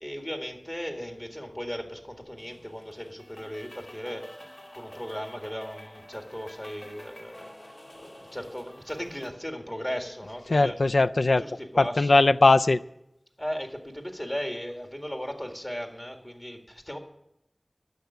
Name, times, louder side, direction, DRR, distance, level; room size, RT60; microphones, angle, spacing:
voice 1, 0.0-4.3 4.8-7.5 7.9-10.8 11.2-12.2 13.4-17.0, equal, 25° left, 4 dB, 1.9 m, -37 dB
sound 1, 2.4-9.3, equal, 70° left, 2.3 m, -48 dB
voice 2, 10.5-11.4 11.8-12.8, left 2 dB, 90° left, 12 dB, 0.3 m, -20 dB
11.5 x 6.9 x 9.4 m, 0.83 s
wide cardioid pair, 50°, 0 cm